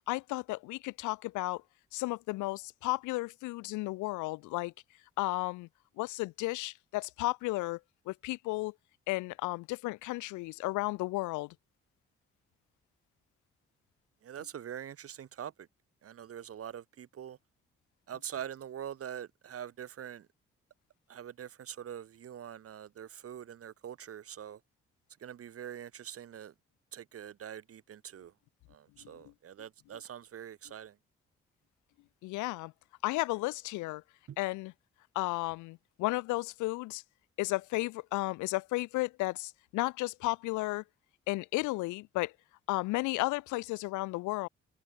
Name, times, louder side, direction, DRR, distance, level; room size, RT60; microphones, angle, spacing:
voice 1, 0.1-1.6 1.9-4.7 5.2-5.7 6.0-7.8 8.1-8.7 9.1-11.5 32.2-32.7 33.0-34.0 34.4-34.7 35.1-37.0 37.4-40.8 41.3-42.3 42.7-44.5, left 21 dB, 65° left, 1.3 m, -33 dB
voice 2, 14.2-15.5 16.0-17.4 18.1-20.3 21.1-24.6 25.2-26.5 26.9-28.3 28.7-30.9 34.3-34.4, right 9 dB, 45° right, 1.4 m, -44 dB
figure-of-eight pair, 40°, 33 cm